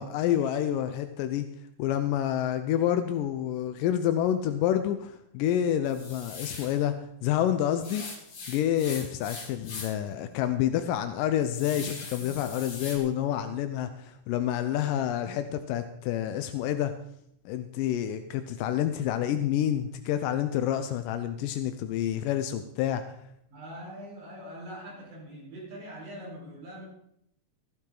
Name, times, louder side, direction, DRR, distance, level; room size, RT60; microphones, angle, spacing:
voice 1, 0.0-1.5 1.8-8.1 8.5-16.9 17.5-23.0, left 11 dB, 85° left, 9 dB, 2.3 m, -28 dB
sound 1, 5.9-6.8 7.8-10.1 10.5-10.6 11.1-13.0, left 4 dB, 55° left, 3.6 m, -41 dB
voice 2, 23.5-26.8, equal, 80° right, -3 dB, 6.1 m, -43 dB
14.5 x 13.5 x 3.9 m, 0.74 s
omnidirectional pair, 3.8 m